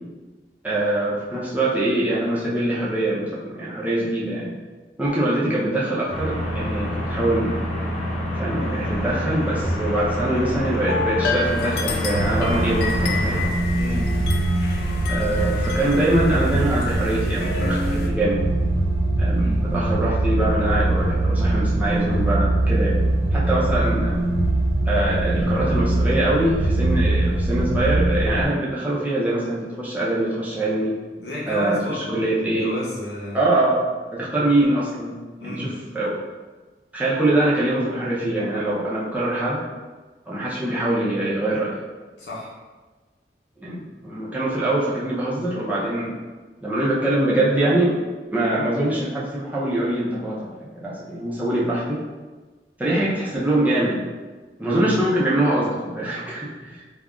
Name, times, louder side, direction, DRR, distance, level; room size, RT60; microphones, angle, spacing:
voice 1, 0.6-4.5 5.0-7.6 8.3-13.4 15.1-18.4 19.2-23.0 23.3-24.2 24.9-30.9 31.5-31.8 32.1-32.7 33.3-33.8 34.1-35.2 35.4-36.2 36.9-39.6 40.3-41.8 43.6-46.2 46.6-47.9 48.3-52.0 52.8-54.1 54.6-56.8, right 1 dB, 10° right, -7 dB, 0.4 m, -23 dB
sound 1, 6.1-13.5, equal, 40° left, 0.9 m, -27 dB
sound 2, 8.6-18.1, left 3 dB, 65° left, 0.3 m, -30 dB
sound 3, 12.1-28.4, right 1 dB, 80° right, 0.5 m, -22 dB
voice 2, 13.7-14.2 19.3-19.6 31.1-33.5 35.4-35.8 42.2-42.5, left 1 dB, 80° left, -6 dB, 0.8 m, -32 dB
2.4 x 2.1 x 3.5 m, 1.3 s
head